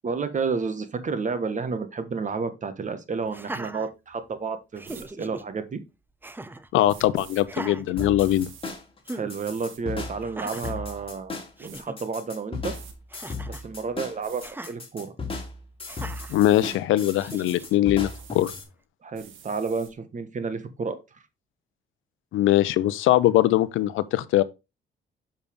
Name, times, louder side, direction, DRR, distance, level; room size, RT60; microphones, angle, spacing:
voice 1, 0.0-5.8 9.1-12.7 13.5-15.1 19.0-21.0, right 5 dB, 40° right, 1.3 m, -31 dB
Laughter, 3.3-4.4 4.8-5.4 6.2-6.7 7.4-8.7 9.1-9.3 10.2-10.8 11.3-11.4 11.6-12.0 13.1-13.7 14.4-14.7 15.9-16.4 17.2-17.8, right 2 dB, 10° right, 0.6 m, -39 dB
sound 1, 4.8-5.1 6.9-7.4 8.2-8.7 9.3-9.8 10.6-10.7 11.3-11.8 12.7-13.0 14.2-14.5 15.9-16.8 17.0-17.7 18.0-18.5 19.1-19.9, right 7 dB, 80° right, 1.5 m, -48 dB
voice 2, 6.7-8.5 16.3-18.5 22.3-24.4, left 14 dB, 85° left, 0.6 m, -21 dB
sound 2, 8.0-18.6, left 3 dB, 25° left, 2.3 m, -36 dB
7.0 x 5.4 x 3.4 m
cardioid pair, 90°, 20 cm